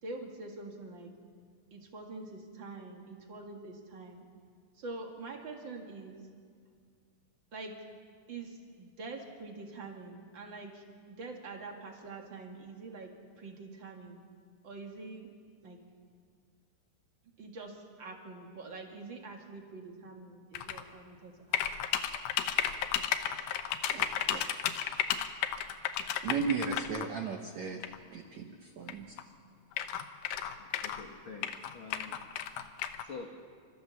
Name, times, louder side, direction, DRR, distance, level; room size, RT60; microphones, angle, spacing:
voice 1, 0.0-1.1 1.7-4.2 4.7-6.2 7.5-7.8 8.3-14.2 14.6-15.3 15.6-15.8 17.4-21.6, right 3 dB, 45° right, 2 dB, 1.7 m, -45 dB
sound 1, 20.5-20.8 21.5-27.1 27.8-28.0 28.9-29.0 29.2-29.3 29.7-31.0 31.4-33.0, left 10 dB, 70° left, 2.4 m, -33 dB
voice 2, 23.9-24.4 26.2-27.8 28.1-29.2, right 5 dB, 85° right, 4 dB, 1.5 m, -36 dB
voice 3, 30.6-32.2 33.0-33.4, left 4 dB, 90° left, 2 dB, 1.1 m, -47 dB
29.5 x 14.0 x 7.1 m, 2.1 s
omnidirectional pair, 4.8 m